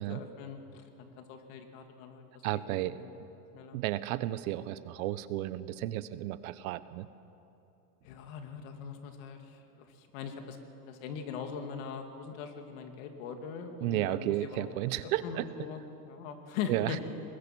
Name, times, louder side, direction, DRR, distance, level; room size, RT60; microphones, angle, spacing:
voice 1, 0.0-2.3 2.7-3.1 3.5-3.8 8.0-10.6 10.9-14.7 15.0-17.0, left 6 dB, 60° left, 5 dB, 2.6 m, -41 dB
voice 2, 2.4-3.0 3.7-7.1 13.8-15.5 16.7-17.0, right 15 dB, 65° right, 15 dB, 0.9 m, -33 dB
23.5 x 20.5 x 6.2 m, 2.8 s
supercardioid pair, 155°, 46 cm